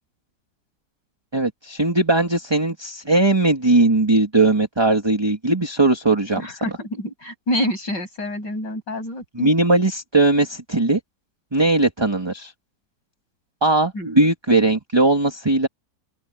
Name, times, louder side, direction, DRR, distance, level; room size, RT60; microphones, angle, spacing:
voice 1, 1.3-6.6 9.3-11.0 11.5-12.5 13.6-15.7, right 2 dB, 15° right, 1.8 m, -19 dB
voice 2, 6.4-9.5 13.9-14.3, left 1 dB, 75° left, 7.5 m, -27 dB
open air
omnidirectional pair, 1.9 m